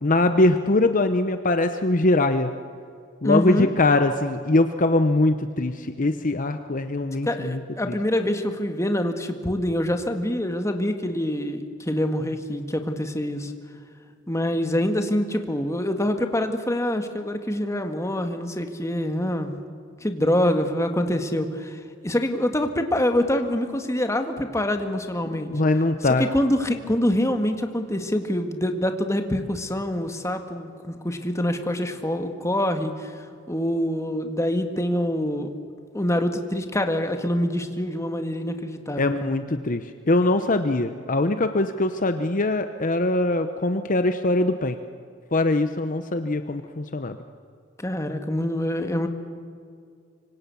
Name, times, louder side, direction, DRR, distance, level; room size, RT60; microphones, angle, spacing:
voice 1, 0.0-2.5 3.2-7.6 7.9-8.0 25.3-26.2 39.0-44.8 45.3-47.2, left 2 dB, 45° left, 8 dB, 0.9 m, -22 dB
voice 2, 3.2-3.7 7.2-13.5 14.3-19.6 20.0-25.5 26.2-35.5 35.9-39.3 47.8-49.1, left 1 dB, 15° left, 6 dB, 1.8 m, -25 dB
25.5 x 24.5 x 7.1 m, 2.4 s
head